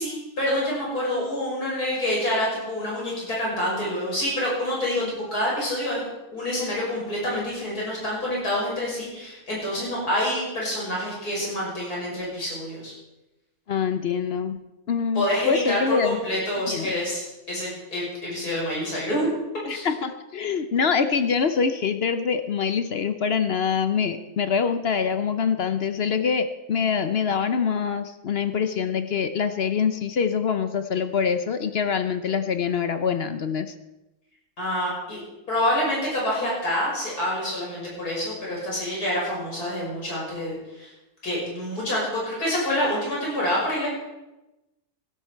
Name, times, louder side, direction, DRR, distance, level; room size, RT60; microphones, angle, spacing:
voice 1, 0.0-12.9 15.1-19.3 19.7-19.9 34.6-35.2 35.5-40.9 41.2-43.9, left 1 dB, 75° left, -5 dB, 6.4 m, -27 dB
voice 2, 13.7-14.6 14.9-16.2 16.7-16.9 19.7-33.7, left 6 dB, 55° left, 9 dB, 0.8 m, -25 dB
16.0 x 12.5 x 4.5 m, 1.0 s
omnidirectional pair, 1.6 m